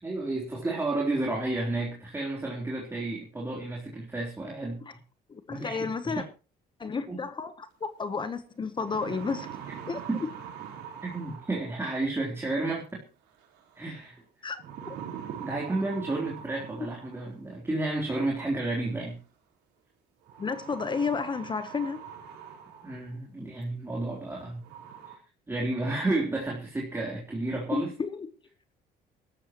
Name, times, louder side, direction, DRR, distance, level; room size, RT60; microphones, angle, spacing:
voice 1, 0.0-4.8 5.5-5.8 6.0-6.2 7.1-7.2 10.1-10.2 11.0-13.0 13.8-14.2 15.4-19.2 22.8-24.6 25.1-25.2 25.5-27.9, right 2 dB, 15° right, 3.8 m, -31 dB
voice 2, 5.3-6.2 6.8-9.5 9.9-10.3 14.4-15.0 20.4-22.0 27.7-28.3, left 5 dB, 30° left, 1.1 m, -32 dB
sound 1, 8.0-8.1 8.6-12.0 13.4-13.8 14.6-17.4 18.6-18.7 20.3-23.1 23.6-23.7 24.3-24.4 24.6-25.1, right 8 dB, 90° right, 4.2 m, -43 dB
23.5 x 13.0 x 3.1 m
cardioid pair, 110°, 17 cm